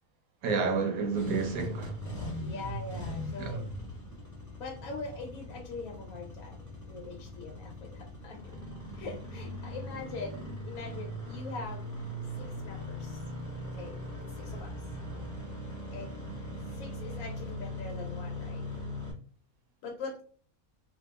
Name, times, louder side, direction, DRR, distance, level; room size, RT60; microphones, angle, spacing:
voice 1, 0.4-1.9 3.4-3.6, right 4 dB, 90° right, 1.1 m, -30 dB
Engine starting, 1.0-19.1, equal, 20° left, 0.5 m, -40 dB
voice 2, 2.4-3.7 4.6-6.6 6.9-8.6 9.0-11.9 12.6-13.2 13.8-14.0 14.4-14.7 15.9-16.1 16.8-18.7 19.8-20.2, left 3 dB, 80° left, 1.0 m, -42 dB
2.8 x 2.3 x 2.2 m
omnidirectional pair, 1.5 m